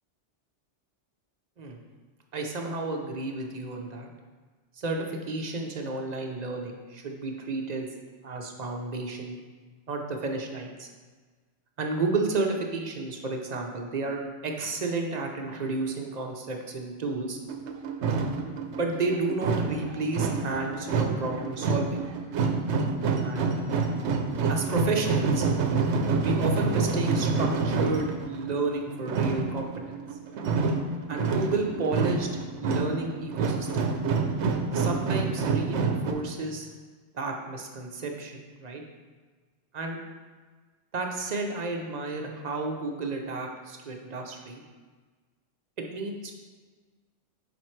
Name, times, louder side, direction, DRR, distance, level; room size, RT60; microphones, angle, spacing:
voice 1, 2.3-4.1 4.8-7.9 8.2-9.4 9.9-10.9 11.8-17.4 18.7-22.0 23.2-23.8 24.5-25.5 26.2-30.0 31.1-32.3 32.6-33.9 34.7-36.7 37.1-38.8 39.7-40.0 40.9-44.6 45.8-46.3, right 3 dB, 45° right, 2 dB, 0.6 m, -32 dB
sound 1, 17.4-36.1, right 4 dB, 70° right, 0.9 m, -28 dB
7.4 x 5.0 x 3.2 m, 1.4 s
omnidirectional pair, 1.2 m